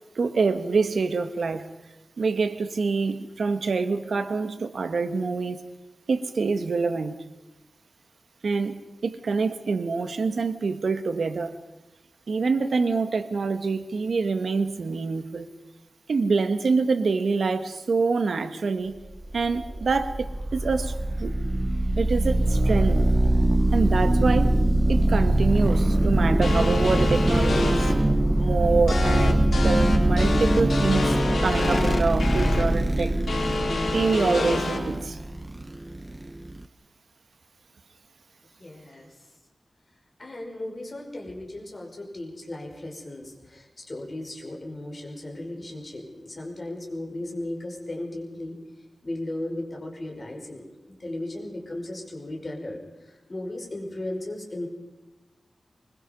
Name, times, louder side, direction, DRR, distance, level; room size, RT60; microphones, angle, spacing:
voice 1, 0.1-1.7 2.2-5.6 6.1-7.2 8.4-11.5 12.3-15.5 16.1-18.9 19.3-20.9 21.2-21.3 22.0-23.0 23.7-24.6 24.9-27.9 28.4-31.1 31.4-33.2 33.9-35.2, right 4 dB, 80° right, 10 dB, 1.6 m, -25 dB
sound 1, 19.2-36.6, right 1 dB, 15° right, 0.8 m, -23 dB
sound 2, 26.4-27.9 28.9-32.6 33.3-34.8, left 3 dB, 90° left, 4.0 m, -27 dB
voice 2, 38.6-39.1 40.2-48.6 49.0-54.7, left 1 dB, 35° left, 0 dB, 5.6 m, -36 dB
24.0 x 22.0 x 5.4 m, 1.0 s
wide cardioid pair, 110°, 0 cm